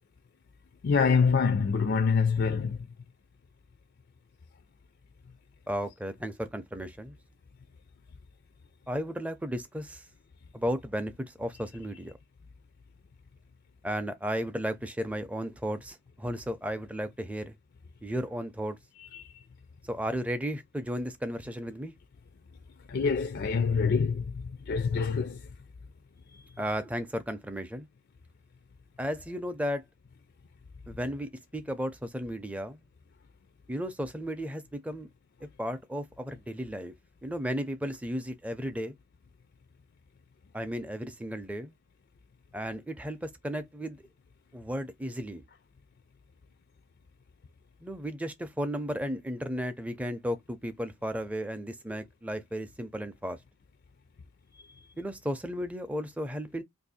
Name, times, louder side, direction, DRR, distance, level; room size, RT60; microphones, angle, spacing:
voice 1, 0.8-2.8 19.1-19.2 22.9-24.2 24.7-25.4, left 5 dB, 50° left, 0.4 m, -25 dB
voice 2, 5.7-7.1 8.9-10.0 10.5-12.2 13.8-17.5 18.0-18.8 19.9-21.9 26.6-27.9 29.0-29.8 30.9-32.8 33.7-35.1 35.4-36.9 37.2-38.9 40.5-41.7 42.5-44.0 44.5-45.4 47.8-53.4 55.0-56.6, equal, 5° right, 0.5 m, -34 dB
2.6 x 2.6 x 4.1 m
head